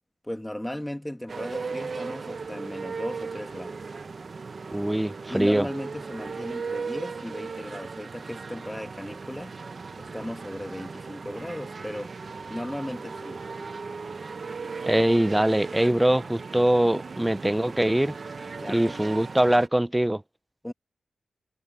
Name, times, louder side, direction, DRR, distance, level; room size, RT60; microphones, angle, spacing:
voice 1, 0.2-3.8 5.3-9.5 10.0-12.1 12.5-13.4 18.6-19.1 20.6-20.7, left 1 dB, 5° left, 1.5 m, -36 dB
sound 1, 1.3-19.7, right 4 dB, 45° right, 1.0 m, -37 dB
voice 2, 4.7-5.7 14.9-18.2 18.7-20.2, right 1 dB, 10° right, 0.5 m, -22 dB
wide cardioid pair, 120°, 0 cm